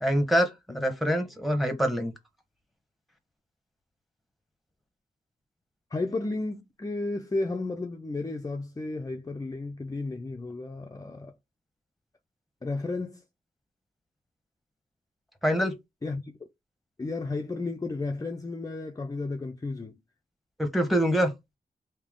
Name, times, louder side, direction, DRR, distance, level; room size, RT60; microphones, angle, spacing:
voice 1, 0.0-2.1 15.4-15.7 20.6-21.3, equal, ahead, 1.2 m, -25 dB
voice 2, 5.9-11.3 12.6-13.2 16.0-16.3 17.0-20.0, left 3 dB, 20° left, 0.5 m, -33 dB
3.4 x 2.8 x 3.7 m
cardioid pair, 60°, 16 cm